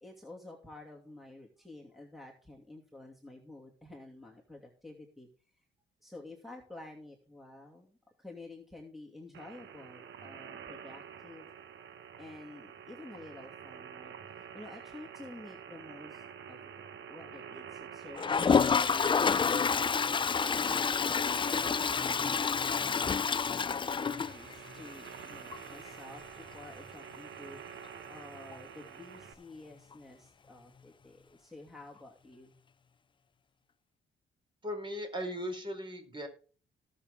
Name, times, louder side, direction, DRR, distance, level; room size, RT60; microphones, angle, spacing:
voice 1, 0.0-5.3 6.0-11.5 12.2-19.7 20.4-21.1 21.5-32.5, left 2 dB, ahead, 0 dB, 2.6 m, -50 dB
sound 1, 9.3-29.3, right 8 dB, 70° right, 1.3 m, -48 dB
Toilet flush, 18.2-24.9 25.2-25.3 25.5-25.6 25.9-26.0 28.5-28.6 29.9-30.0, left 6 dB, 25° left, 0.4 m, -28 dB
voice 2, 34.6-36.3, equal, 25° right, 5 dB, 4.4 m, -37 dB
18.0 x 6.8 x 3.7 m, 0.41 s
cardioid pair, 90°, 20 cm